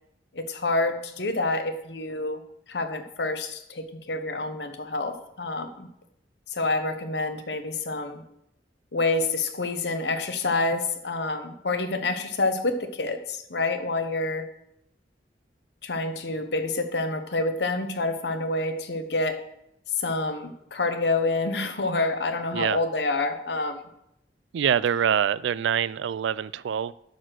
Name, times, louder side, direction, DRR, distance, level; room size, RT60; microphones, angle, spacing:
voice 1, 0.3-2.4 2.7-5.9 6.5-8.2 8.9-14.5 15.8-19.4 20.0-23.8, left 2 dB, 65° left, 1.0 m, -28 dB
voice 2, 24.5-26.9, right 8 dB, 75° right, 0.3 m, -25 dB
12.5 x 4.3 x 6.3 m
head